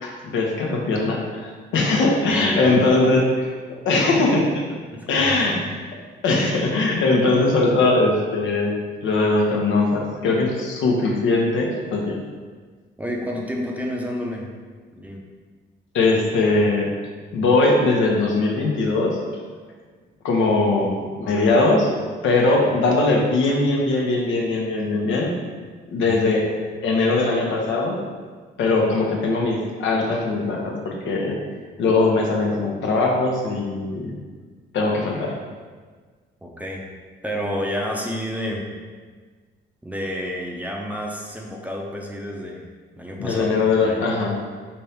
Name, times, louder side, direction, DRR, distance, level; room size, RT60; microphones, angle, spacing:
voice 1, 0.0-3.3 3.8-4.6 5.1-5.6 6.2-8.7 9.0-12.2 15.9-16.9 17.3-19.2 20.2-21.9 22.2-25.3 25.9-26.4 26.8-28.0 28.6-31.4 31.8-34.1 34.7-35.3 43.2-44.4, left 3 dB, 75° left, -1 dB, 0.9 m, -20 dB
voice 2, 2.3-3.1 4.9-5.7 13.0-14.5 15.0-15.2 20.8-20.9 26.0-26.4 36.4-36.9 37.2-38.7 39.8-42.6 43.0-44.1, equal, 5° right, -1 dB, 0.6 m, -30 dB
5.3 x 2.8 x 3.4 m, 1.5 s
cardioid pair, 90°, 20 cm